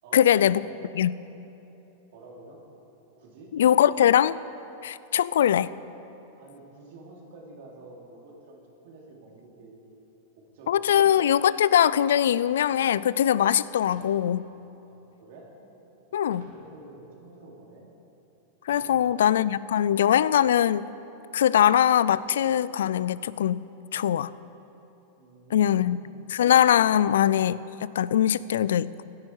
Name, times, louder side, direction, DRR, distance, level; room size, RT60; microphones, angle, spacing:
voice 1, 0.1-0.6 1.0-1.2 3.5-4.4 4.8-5.7 10.7-14.5 16.1-16.5 18.7-20.9 21.3-23.6 23.9-24.3 25.5-26.0 26.3-29.0, left 10 dB, 80° left, 19 dB, 0.3 m, -22 dB
voice 2, 2.1-2.6 3.2-3.5 6.4-9.8 10.3-11.1 14.8-15.5 16.3-17.9 18.8-19.2 25.2-26.0, right 2 dB, 65° right, -1 dB, 3.0 m, -49 dB
sound 1, 9.9-10.0 10.8-11.2 11.7-12.0 13.9-14.3 14.9-15.3 16.3-16.7 17.4-17.5 18.6-19.1 20.1-20.2 20.6-20.7 21.1-22.2, right 2 dB, 85° right, 2.7 m, -50 dB
16.0 x 10.5 x 4.7 m, 3.0 s
hypercardioid pair, 130°, 0 cm